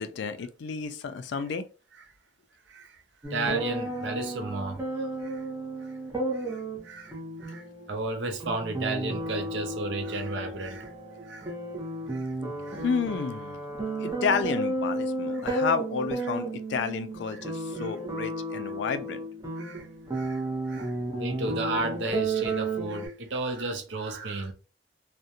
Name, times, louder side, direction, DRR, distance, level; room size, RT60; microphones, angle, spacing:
voice 1, 0.0-1.7 12.7-13.6 14.0-19.2, left 5 dB, 70° left, 0.3 m, -31 dB
voice 2, 2.7-5.4 5.8-5.9 6.3-10.9 11.2-11.5 12.1-12.3 12.6-12.8 15.3-15.4 16.3-16.4 17.3-17.4 17.8-17.9 19.6-19.9 20.1-24.5, right 2 dB, 75° right, 0.5 m, -34 dB
sound 1, 3.2-23.1, right 2 dB, 20° right, 0.6 m, -33 dB
2.4 x 2.0 x 2.7 m
head